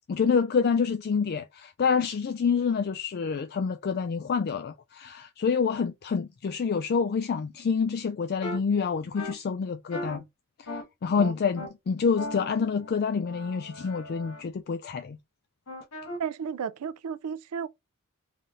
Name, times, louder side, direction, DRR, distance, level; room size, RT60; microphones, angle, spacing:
voice 1, 0.1-10.2 10.6-15.2, left 5 dB, 45° left, 0.3 m, -27 dB
sound 1, 8.4-8.6 9.2-9.3 9.9-10.2 10.7-10.8 11.2-11.7 12.2-14.4 15.7-16.2, left 1 dB, 75° left, 1.3 m, -37 dB
voice 2, 16.2-17.7, right 7 dB, 80° right, 0.4 m, -33 dB
3.3 x 2.7 x 3.6 m
head